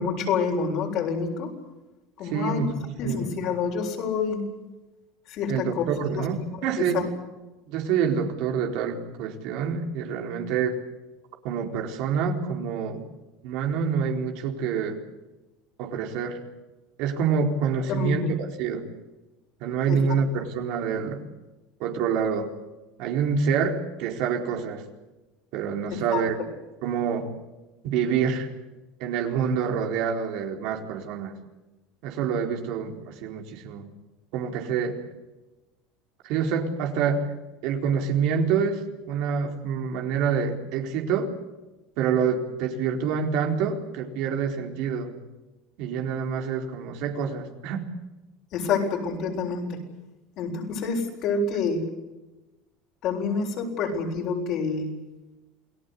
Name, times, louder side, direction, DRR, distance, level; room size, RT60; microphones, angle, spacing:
voice 1, 0.0-1.5 2.2-2.7 3.0-4.4 5.3-6.2 6.8-7.1 17.9-18.3 19.9-20.0 26.1-26.2 48.5-49.8 50.4-51.8 53.0-54.9, left 5 dB, 55° left, 2 dB, 7.6 m, -27 dB
voice 2, 2.3-3.3 5.5-7.0 7.7-10.8 11.4-13.0 13.4-15.0 15.8-16.4 17.0-18.9 19.6-21.2 21.8-22.5 23.0-24.8 25.5-26.4 26.8-27.3 27.8-28.5 29.0-31.4 32.0-33.9 34.3-35.0 36.2-37.3 37.6-41.4 42.0-45.1 45.8-47.8, right 6 dB, 70° right, 3 dB, 4.2 m, -27 dB
29.0 x 18.5 x 8.5 m, 1.1 s
supercardioid pair, 115°, 0 cm